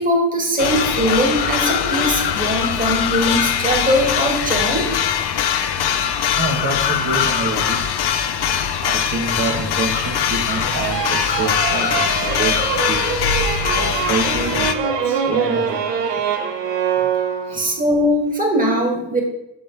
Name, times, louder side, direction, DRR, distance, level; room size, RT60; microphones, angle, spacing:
voice 1, 0.0-4.8 17.5-19.2, equal, 20° right, 0 dB, 2.1 m, -20 dB
sound 1, 0.6-14.7, left 8 dB, 60° left, 0.7 m, -21 dB
voice 2, 6.4-7.9 8.4-13.2 13.8-16.4 17.5-17.7, right 3 dB, 35° right, -3 dB, 1.2 m, -27 dB
sound 2, 10.7-17.9, right 7 dB, 65° right, 1.0 m, -24 dB
7.3 x 6.4 x 3.3 m, 0.88 s
cardioid pair, 100°, 45 cm